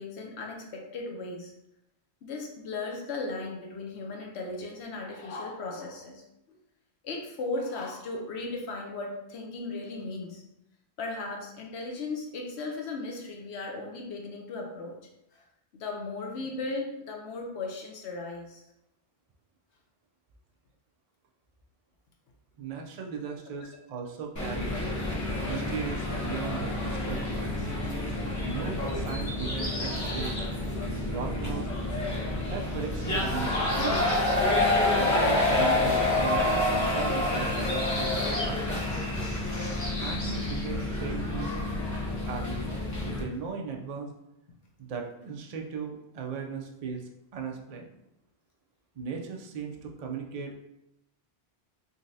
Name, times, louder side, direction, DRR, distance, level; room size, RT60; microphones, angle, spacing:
voice 1, 0.0-1.5 2.2-6.2 6.5-6.6 7.0-10.4 11.0-15.0 15.3-15.4 15.7-18.6 40.2-40.5, left 3 dB, 80° left, 1 dB, 1.0 m, -36 dB
voice 2, 22.6-24.7 25.4-27.7 28.3-30.4 30.9-31.7 32.5-34.0 34.9-38.1 38.4-38.8 40.0-41.5 42.2-42.6 43.0-44.1 44.8-47.9 49.0-50.6, right 6 dB, 50° right, 1 dB, 0.5 m, -37 dB
sound 1, 24.4-43.2, left 2 dB, 20° left, 0.8 m, -28 dB
sound 2, 28.9-30.5 31.1-31.2 32.6-34.4 36.5-36.9 37.2-40.6, left 1 dB, 45° left, 1.0 m, -38 dB
3.9 x 3.1 x 2.6 m, 0.85 s
omnidirectional pair, 1.1 m